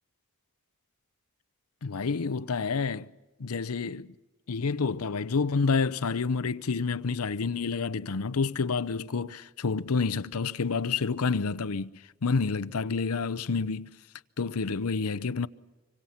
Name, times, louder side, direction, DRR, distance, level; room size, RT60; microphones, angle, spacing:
voice 1, 1.8-3.1 3.4-4.1 4.5-13.9 14.4-15.5, left 4 dB, 75° left, 0.7 m, -29 dB
25.5 x 25.0 x 5.8 m
head